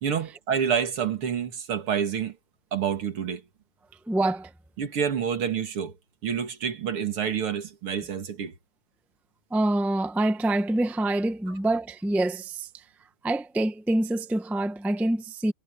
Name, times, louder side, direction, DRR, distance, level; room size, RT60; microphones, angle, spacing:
voice 1, 0.0-2.4 2.7-3.4 4.8-5.9 6.2-8.5, right 7 dB, 80° right, 3.0 m, -28 dB
voice 2, 4.1-4.5 9.5-12.7 13.2-15.5, right 1 dB, ahead, 0.6 m, -26 dB
omnidirectional pair, 2.4 m